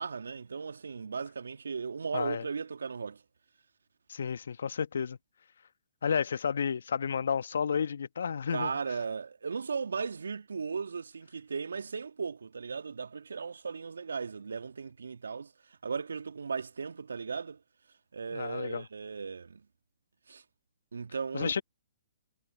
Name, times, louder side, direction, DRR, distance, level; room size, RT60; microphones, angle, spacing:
voice 1, 0.0-3.2 8.5-17.6 18.1-19.7 20.3-20.4 20.9-21.6, right 5 dB, 75° right, 2.1 m, -37 dB
voice 2, 2.1-2.4 4.1-5.2 6.0-8.7 18.3-18.8 21.3-21.6, left 6 dB, 65° left, 1.4 m, -31 dB
figure-of-eight pair, 130°, 0 cm